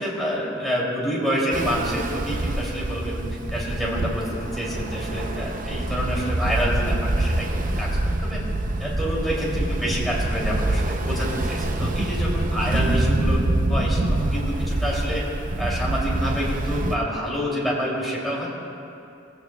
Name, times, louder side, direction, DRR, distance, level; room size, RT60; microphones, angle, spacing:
voice 1, 0.0-3.2 3.5-8.4 8.8-13.4 13.7-15.2 15.6-18.5, equal, ahead, -6 dB, 2.8 m, -28 dB
Ocean, 1.5-16.9, right 1 dB, 40° right, 0.7 m, -25 dB
19.0 x 16.0 x 2.3 m, 2.7 s
head